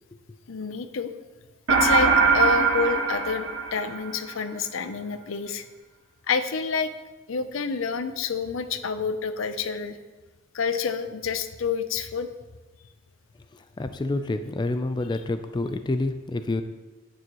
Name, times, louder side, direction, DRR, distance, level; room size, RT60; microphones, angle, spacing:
voice 1, 0.5-1.1 1.7-5.6 6.3-6.9 7.3-10.0 10.5-12.3, left 5 dB, 80° left, 10 dB, 0.6 m, -28 dB
sound 1, 1.7-4.3, right 5 dB, 80° right, 1.5 m, -21 dB
voice 2, 13.8-16.6, left 2 dB, 20° left, 9 dB, 0.4 m, -28 dB
9.6 x 8.9 x 3.0 m, 1.2 s
head